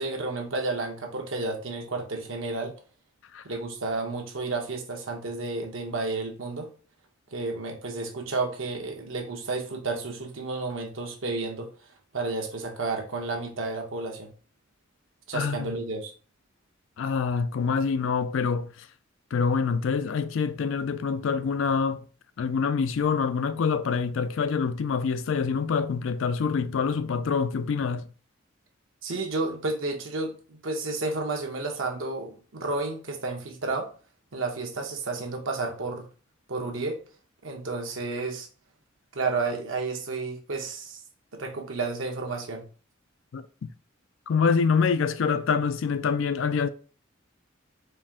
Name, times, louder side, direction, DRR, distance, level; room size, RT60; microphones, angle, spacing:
voice 1, 0.0-2.8 3.4-6.7 7.3-14.3 15.3-16.1 29.0-33.9 34.3-36.1 36.5-37.0 37.4-38.5 39.1-41.0 41.3-42.7, right 3 dB, 70° right, 1.0 m, -31 dB
voice 2, 15.3-15.7 17.0-18.7 19.3-22.1 22.4-28.0 43.3-43.7 44.3-46.7, left 5 dB, 70° left, 0.4 m, -26 dB
4.4 x 2.5 x 3.5 m
head